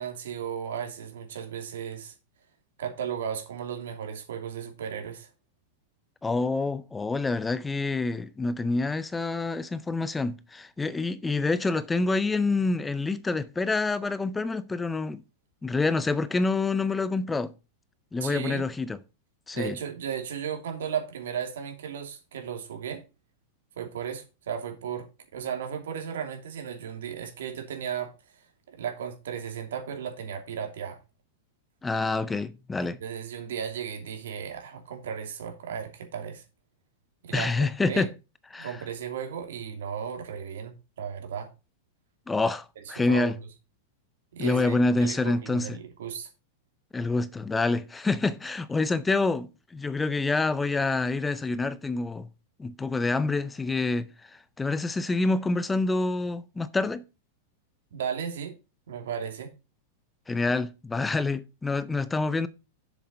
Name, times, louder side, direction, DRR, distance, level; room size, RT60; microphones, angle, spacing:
voice 1, 0.0-2.1 2.8-5.3 18.2-18.7 19.5-23.0 23.8-25.1 25.3-28.1 28.7-31.0 32.8-36.4 37.2-38.1 38.6-41.5 43.0-43.3 44.3-46.3 57.9-58.5 58.9-59.5, right 8 dB, 90° right, 2.7 m, -35 dB
voice 2, 6.2-15.2 15.6-17.5 18.1-19.0 19.5-19.8 31.8-33.0 37.3-38.1 38.5-38.8 42.3-43.4 44.4-45.8 46.9-52.3 52.6-54.1 54.6-57.0 60.3-62.5, left 3 dB, 10° left, 0.5 m, -27 dB
7.4 x 7.1 x 4.2 m
supercardioid pair, 150°, 0 cm